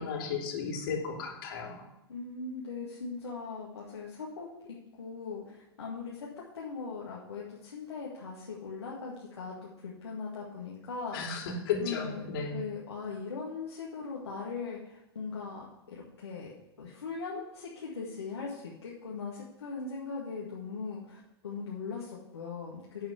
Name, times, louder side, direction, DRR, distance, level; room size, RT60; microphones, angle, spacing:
voice 1, 0.0-1.8 11.1-12.5, left 5 dB, 55° left, 0 dB, 3.1 m, -34 dB
voice 2, 2.1-6.3 6.5-11.4 11.8-16.5 16.8-23.1, left 4 dB, 75° left, -5 dB, 1.9 m, -40 dB
11.5 x 5.0 x 8.3 m, 0.89 s
figure-of-eight pair, 95°, 14 cm